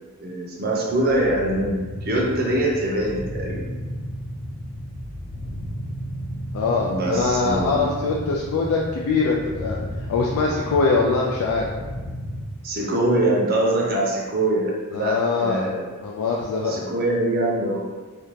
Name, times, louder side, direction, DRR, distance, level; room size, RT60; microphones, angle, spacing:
voice 1, 0.2-3.6 6.9-7.9 12.6-15.8 16.6-17.8, right 1 dB, 40° right, -3 dB, 0.5 m, -23 dB
sound 1, 0.9-12.4, equal, 30° left, 1.1 m, -33 dB
voice 2, 6.5-9.8 10.1-11.7 14.9-15.6 16.0-16.8, left 4 dB, 80° left, -2 dB, 0.3 m, -22 dB
2.4 x 2.1 x 3.0 m, 1.3 s
head